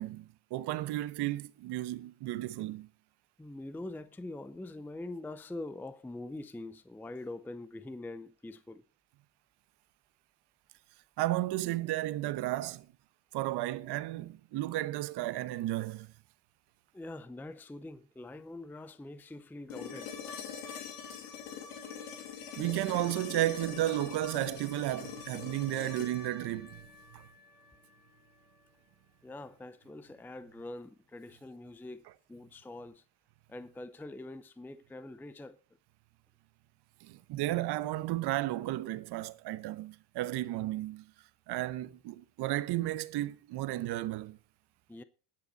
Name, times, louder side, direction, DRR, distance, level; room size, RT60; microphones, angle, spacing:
voice 1, 0.0-2.9 11.2-12.9 13.3-16.1 22.6-27.3 37.0-41.1 41.5-44.4, right 15 dB, 55° right, 1.0 m, -33 dB
voice 2, 3.4-8.8 16.9-20.1 29.2-32.0 32.3-33.0 33.5-35.6 44.9-45.0, left 2 dB, 5° left, 0.6 m, -44 dB
sound 1, 19.7-27.8 29.9-30.0, left 7 dB, 85° left, 2.7 m, -44 dB
20.5 x 7.1 x 4.1 m
hypercardioid pair, 75°, 47 cm